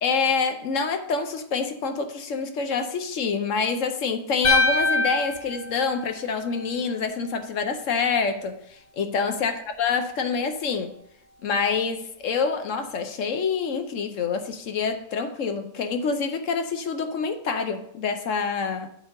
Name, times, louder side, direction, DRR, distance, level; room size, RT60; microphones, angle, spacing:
voice 1, 0.0-10.9 11.4-18.9, left 5 dB, 65° left, 1.0 m, -26 dB
sound 1, 4.4-6.7, left 2 dB, 40° left, 0.7 m, -24 dB
10.5 x 5.3 x 3.8 m
omnidirectional pair, 1.6 m